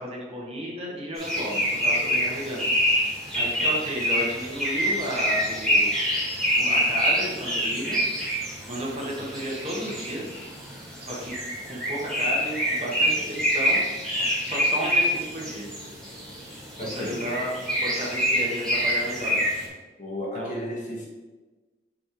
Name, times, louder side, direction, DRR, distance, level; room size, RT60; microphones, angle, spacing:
voice 1, 0.0-2.7 3.3-5.9 6.6-8.0 8.7-10.4 11.0-11.4 11.7-13.8 14.4-15.7 16.8-17.5 17.8-19.4 20.3-20.7, equal, 35° right, -4 dB, 1.3 m, -33 dB
sound 1, 1.2-19.7, equal, ahead, 1.9 m, -26 dB
voice 2, 16.8-17.2 20.0-21.1, equal, 45° left, -4 dB, 1.5 m, -33 dB
6.4 x 3.3 x 4.4 m, 1.2 s
head